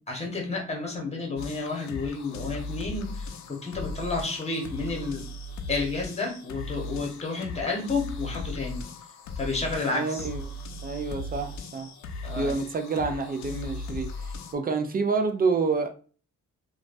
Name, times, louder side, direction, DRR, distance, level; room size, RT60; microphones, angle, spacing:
voice 1, 0.1-5.2 5.7-8.8 9.4-10.3 12.2-12.5, left 3 dB, 20° left, 0 dB, 1.2 m, -31 dB
sound 1, 1.4-14.5, left 2 dB, 65° left, 0.5 m, -38 dB
voice 2, 9.9-10.4 10.8-11.9 12.4-15.9, right 4 dB, 30° right, 6 dB, 0.4 m, -28 dB
3.0 x 2.3 x 2.5 m, 0.38 s
cardioid pair, 90°, 30 cm